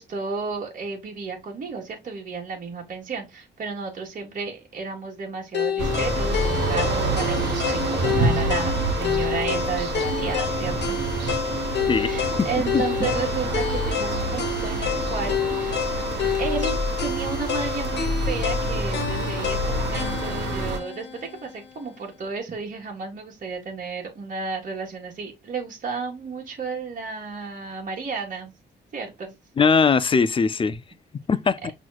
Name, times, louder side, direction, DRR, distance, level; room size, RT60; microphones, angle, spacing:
voice 1, 0.0-11.0 11.9-16.1 16.4-28.5 28.9-29.3, right 4 dB, 45° right, 1.5 m, -33 dB
sound 1, 5.5-21.6, left 7 dB, 75° left, 1.1 m, -29 dB
sound 2, 5.8-20.8, right 2 dB, 90° right, 1.1 m, -27 dB
voice 2, 12.7-13.1 29.6-30.8 31.3-31.7, left 5 dB, 30° left, 0.4 m, -20 dB
6.1 x 3.0 x 2.3 m
cardioid pair, 100°, 18 cm